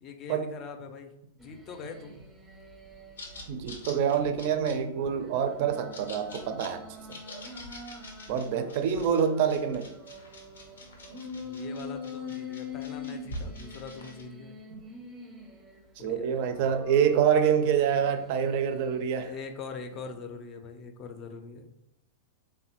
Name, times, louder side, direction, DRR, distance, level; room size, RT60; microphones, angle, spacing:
voice 1, 0.0-2.2 8.5-8.9 11.3-14.6 16.0-16.7 19.2-21.7, left 5 dB, 35° left, 6 dB, 0.5 m, -43 dB
sound 1, 1.4-3.5 3.9-8.4 8.9-15.9 16.4-19.3 19.8-20.1, left 3 dB, 10° right, 0.6 m, -44 dB
sound 2, 3.2-14.2, left 1 dB, 85° left, 0.6 m, -46 dB
voice 2, 3.5-7.2 8.3-9.9 14.7-14.8 16.0-19.3, right 8 dB, 55° right, 8 dB, 0.4 m, -26 dB
3.2 x 2.1 x 2.9 m, 0.84 s
hypercardioid pair, 110°, 0 cm